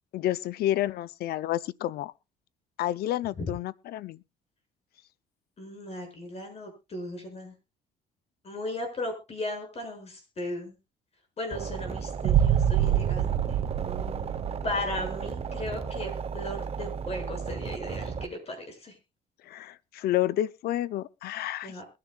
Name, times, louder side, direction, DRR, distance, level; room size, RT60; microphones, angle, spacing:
voice 1, 0.1-2.1 2.8-4.2 19.5-21.7, left 13 dB, 70° left, 0.6 m, -30 dB
voice 2, 5.6-7.5 8.4-10.8 11.4-13.6 14.6-19.0 21.6-21.8, left 1 dB, 40° left, 6.8 m, -36 dB
sound 1, 11.5-18.3, right 6 dB, 35° right, 1.0 m, -34 dB
sound 2, 12.2-15.2, right 10 dB, 85° right, 2.5 m, -25 dB
22.0 x 10.5 x 2.4 m
cardioid pair, 110°, 17 cm